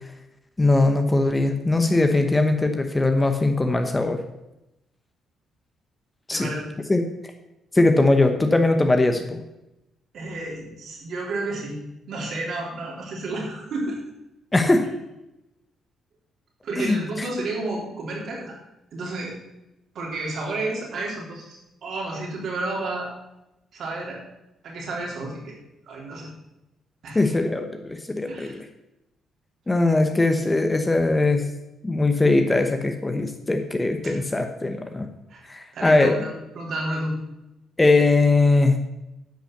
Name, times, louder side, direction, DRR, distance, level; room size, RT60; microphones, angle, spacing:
voice 1, 0.6-4.2 6.3-6.5 6.9-7.1 7.7-9.4 14.5-14.9 16.8-17.3 27.1-28.6 29.7-31.4 31.8-35.1 35.5-36.1 37.8-38.8, left 2 dB, 20° left, 6 dB, 0.9 m, -20 dB
voice 2, 6.3-6.7 10.1-11.8 12.1-14.0 14.8-14.9 16.6-18.5 18.9-19.3 19.9-23.1 23.7-24.2 24.6-25.6 25.9-26.3 27.0-27.2 28.3-28.5 34.0-34.1 35.3-35.4 35.7-37.1, right 2 dB, 65° right, -2 dB, 3.6 m, -31 dB
10.0 x 5.6 x 6.7 m, 0.93 s
cardioid pair, 90°, 0 cm